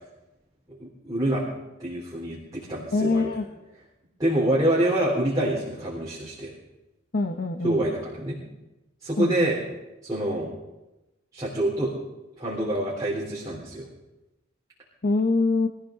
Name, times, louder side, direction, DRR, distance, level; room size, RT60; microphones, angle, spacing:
voice 1, 0.7-1.4 1.8-3.3 4.2-6.5 7.6-8.4 9.0-9.6 10.0-10.5 11.3-11.9 12.4-13.9, right 1 dB, 20° right, -6 dB, 3.5 m, -26 dB
voice 2, 2.9-3.5 7.1-7.8 9.2-9.5 15.0-15.7, left 3 dB, 50° left, 5 dB, 1.0 m, -24 dB
23.5 x 14.5 x 3.8 m, 1.0 s
head